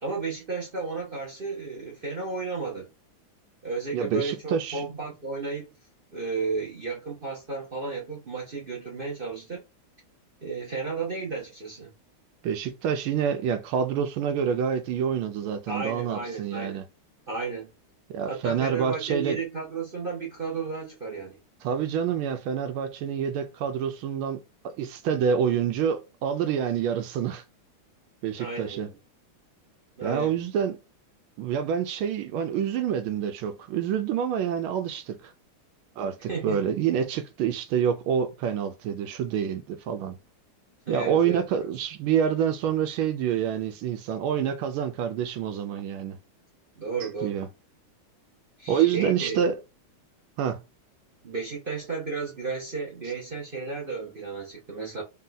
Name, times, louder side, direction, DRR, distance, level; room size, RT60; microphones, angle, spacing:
voice 1, 0.0-2.9 3.6-5.7 6.1-9.6 10.4-11.9 15.7-16.8 17.3-17.7 18.3-21.4 28.4-28.9 30.0-30.3 36.3-36.6 40.9-41.7 46.8-47.4 48.6-49.5 51.2-55.0, right 4 dB, 55° right, 0.6 m, -33 dB
voice 2, 3.9-4.8 12.4-16.8 18.1-19.4 21.6-27.4 28.2-28.9 30.0-30.8 31.4-35.3 36.0-40.2 40.9-46.2 47.2-47.5 48.7-49.5 50.4-50.6, right 8 dB, 80° right, 1.4 m, -27 dB
3.6 x 2.8 x 3.8 m
omnidirectional pair, 2.3 m